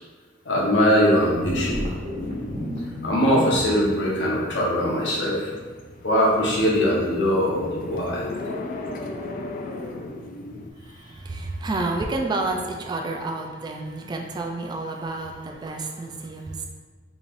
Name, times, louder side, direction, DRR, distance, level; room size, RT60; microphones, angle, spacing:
voice 1, 0.4-1.8 3.0-5.5 6.0-8.2, equal, 85° left, -4 dB, 0.9 m, -21 dB
sound 1, 0.6-10.7, left 2 dB, 50° left, 0.3 m, -37 dB
sound 2, 1.2-3.7, equal, 45° right, 0.7 m, -32 dB
voice 2, 10.8-16.7, right 2 dB, 25° right, 2 dB, 0.3 m, -30 dB
3.9 x 3.1 x 2.5 m, 1.5 s
head